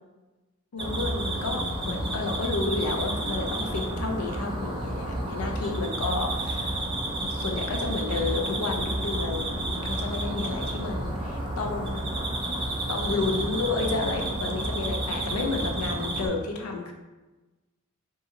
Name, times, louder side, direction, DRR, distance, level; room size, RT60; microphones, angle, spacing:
voice 1, 0.7-6.7 7.2-11.9 12.9-16.9, left 3 dB, 90° left, 3 dB, 0.5 m, -31 dB
sound 1, 0.8-16.3, right 1 dB, 20° right, 0.3 m, -30 dB
2.8 x 2.6 x 2.4 m, 1.1 s
head